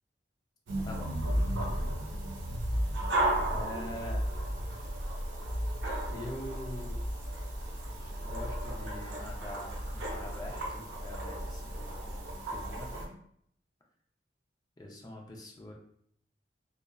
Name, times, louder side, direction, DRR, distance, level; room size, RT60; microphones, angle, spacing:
sound 1, 0.7-13.1, right 1 dB, 85° right, 0.5 m, -34 dB
voice 1, 0.8-1.7 3.4-4.2 6.1-7.0 7.9-13.1 14.8-15.7, left 1 dB, 20° left, 0 dB, 0.4 m, -44 dB
2.6 x 2.1 x 2.2 m, 0.67 s
head